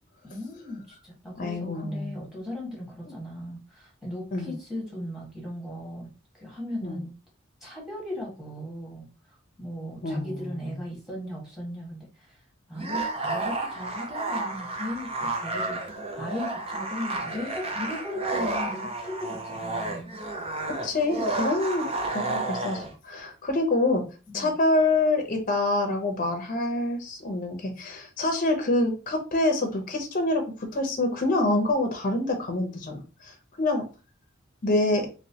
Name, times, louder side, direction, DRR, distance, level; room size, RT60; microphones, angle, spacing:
voice 1, 0.2-7.1 7.6-9.1 9.6-12.4 12.7-20.2 24.3-24.5, left 1 dB, ahead, -3 dB, 1.5 m, -37 dB
voice 2, 1.4-2.1 3.0-3.1 4.3-4.5 6.8-7.0 10.0-10.8 20.8-24.0 24.3-33.8 34.6-35.1, left 2 dB, 40° left, 4 dB, 0.7 m, -26 dB
sound 1, 12.7-22.9, right 2 dB, 30° right, 0.6 m, -31 dB
3.1 x 3.0 x 2.8 m, 0.33 s
head